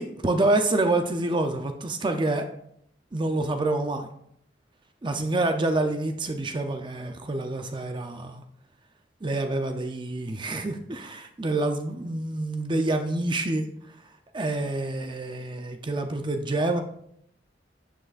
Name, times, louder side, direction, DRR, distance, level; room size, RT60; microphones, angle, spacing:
voice 1, 0.0-2.5 3.1-4.1 5.0-8.4 9.2-13.7 14.3-16.8, right 2 dB, 25° right, 6 dB, 0.6 m, -27 dB
12.5 x 7.7 x 2.5 m, 0.72 s
head